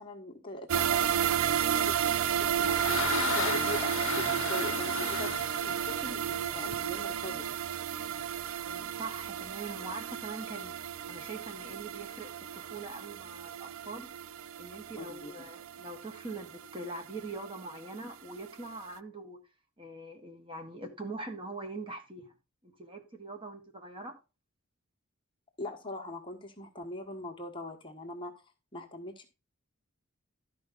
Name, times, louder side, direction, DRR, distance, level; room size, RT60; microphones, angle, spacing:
voice 1, 0.0-2.2 2.6-5.3 5.6-7.6 14.9-15.3 25.6-28.3 28.7-29.3, left 2 dB, 25° left, 1.4 m, -41 dB
sound 1, 0.7-17.8 18.1-18.2 18.6-18.7, right 9 dB, 70° right, 0.3 m, -32 dB
sound 2, 2.1-6.8, left 7 dB, 65° left, 0.7 m, -35 dB
voice 2, 8.6-14.1 14.6-19.4 19.8-22.3 22.6-24.1, right 2 dB, 25° right, 1.2 m, -43 dB
12.0 x 5.3 x 3.9 m
head